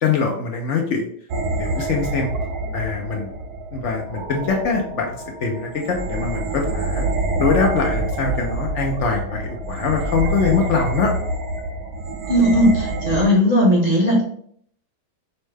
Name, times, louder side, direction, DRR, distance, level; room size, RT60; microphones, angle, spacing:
voice 1, 0.0-1.1 1.6-2.3 2.7-3.3 3.7-7.1 7.4-11.1, left 5 dB, 70° left, 1 dB, 0.7 m, -23 dB
sound 1, 1.3-13.3, right 2 dB, 70° right, 1.1 m, -27 dB
voice 2, 12.3-14.2, equal, 35° right, -5 dB, 0.6 m, -17 dB
5.4 x 2.1 x 3.3 m, 0.63 s
omnidirectional pair, 1.8 m